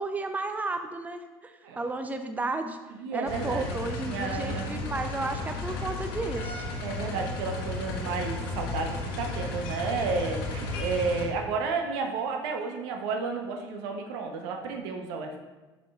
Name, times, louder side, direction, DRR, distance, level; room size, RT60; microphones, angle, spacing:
voice 1, 0.0-2.8 3.1-6.6, right 3 dB, 10° right, 7 dB, 0.5 m, -33 dB
voice 2, 2.9-3.8 4.0-4.8 6.8-15.4, right 4 dB, 70° right, 3 dB, 0.9 m, -32 dB
sound 1, 3.3-11.3, left 2 dB, 75° left, 1.0 m, -34 dB
7.5 x 6.1 x 2.4 m, 1.2 s
hypercardioid pair, 70°, 13 cm